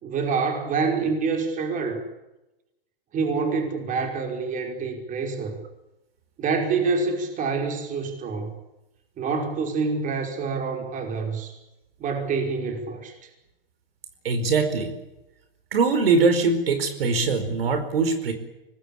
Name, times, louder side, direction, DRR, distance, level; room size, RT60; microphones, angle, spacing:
voice 1, 0.0-2.0 3.1-5.5 6.4-8.5 9.2-11.5 12.0-13.1, right 4 dB, 25° right, 3 dB, 5.3 m, -26 dB
voice 2, 14.2-14.9 15.7-18.3, right 4 dB, 80° right, 9 dB, 4.8 m, -22 dB
25.0 x 20.0 x 8.7 m, 0.96 s
hypercardioid pair, 130°, 29 cm